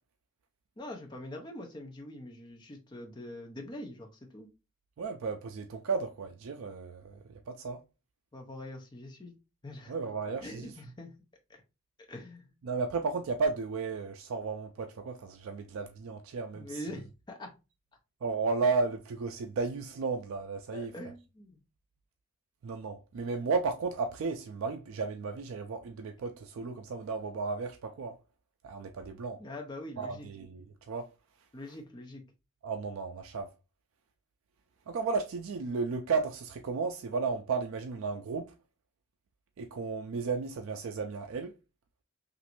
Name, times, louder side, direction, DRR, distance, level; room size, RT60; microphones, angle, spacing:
voice 1, 0.8-4.5 8.3-9.3 9.6-10.0 10.4-11.1 11.5-11.6 12.1-12.5 16.5-17.5 20.7-21.6 29.4-30.3 31.5-32.2, left 1 dB, 20° left, 0.5 m, -44 dB
voice 2, 5.0-7.8 9.9-10.7 12.6-16.8 18.2-20.9 22.6-28.2 28.6-29.4 30.0-31.1 32.6-33.5 34.9-38.5 39.6-41.5, right 4 dB, 65° right, 0.3 m, -34 dB
3.0 x 2.5 x 2.9 m
head